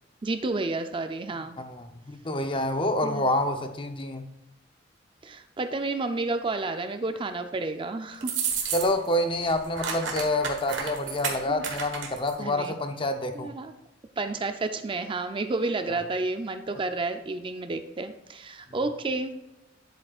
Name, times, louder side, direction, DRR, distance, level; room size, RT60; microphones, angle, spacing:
voice 1, 0.2-1.6 3.0-3.3 5.2-8.8 11.5-11.6 12.4-12.7 13.3-13.7 14.2-19.3, right 3 dB, 25° right, 8 dB, 0.4 m, -31 dB
voice 2, 1.6-4.3 8.7-13.5, left 1 dB, 25° left, 7 dB, 0.7 m, -27 dB
sound 1, 8.2-9.1 9.4-12.3, right 6 dB, 75° right, 1.4 m, -31 dB
10.0 x 7.9 x 2.4 m, 0.92 s
head